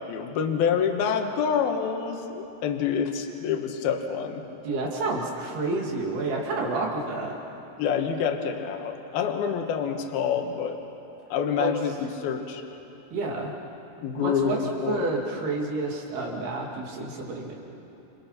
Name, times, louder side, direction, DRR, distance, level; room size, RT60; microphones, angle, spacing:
voice 1, 0.0-4.5 7.8-10.8 11.3-12.6 14.0-15.1, left 7 dB, 70° left, 4 dB, 3.2 m, -27 dB
voice 2, 4.6-7.4 11.6-11.7 13.1-13.5 14.2-14.6 14.9-17.5, right 3 dB, 70° right, -1 dB, 4.8 m, -29 dB
29.0 x 28.5 x 6.0 m, 2.9 s
omnidirectional pair, 4.7 m